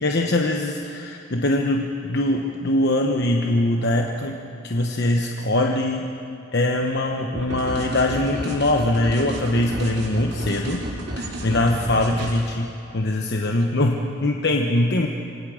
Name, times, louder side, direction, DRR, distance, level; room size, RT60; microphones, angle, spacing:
voice 1, 0.0-4.4 4.6-6.1 6.5-10.9 11.2-15.1, left 1 dB, 50° left, 2 dB, 1.1 m, -22 dB
sound 1, 7.3-12.4, right 1 dB, 50° right, 3.7 m, -32 dB
27.0 x 24.0 x 5.1 m, 2.7 s
head